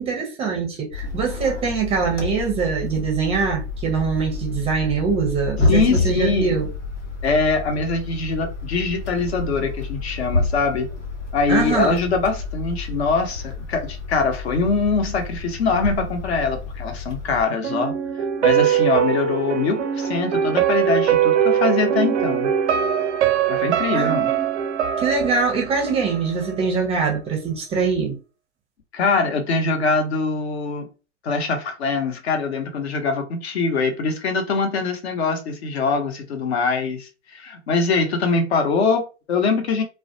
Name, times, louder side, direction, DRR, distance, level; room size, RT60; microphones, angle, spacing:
voice 1, 0.0-6.7 11.5-12.0 23.9-24.4 25.0-28.2, right 5 dB, 15° right, 0.5 m, -23 dB
sound 1, 0.9-17.4, left 3 dB, 90° left, 1.0 m, -29 dB
voice 2, 5.7-6.5 7.2-10.9 11.3-17.9 18.4-22.5 23.5-24.3 28.9-30.9 31.2-39.8, left 4 dB, 60° left, 0.9 m, -23 dB
sound 2, 17.6-26.6 26.9-27.0, right 9 dB, 70° right, 0.5 m, -21 dB
2.3 x 2.1 x 2.6 m
hypercardioid pair, 115°, 36 cm